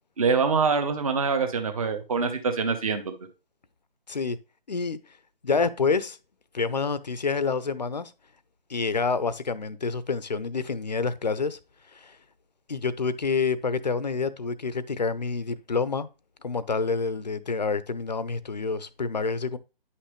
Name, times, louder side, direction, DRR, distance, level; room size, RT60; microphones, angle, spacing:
voice 1, 0.2-3.1, right 5 dB, 35° right, 1.1 m, -25 dB
voice 2, 4.7-5.0 5.4-6.2 6.5-8.1 8.7-11.6 11.9-12.2 12.7-16.1 16.4-19.6, left 4 dB, 45° left, 0.6 m, -28 dB
9.5 x 5.8 x 3.1 m
figure-of-eight pair, 155°, 30 cm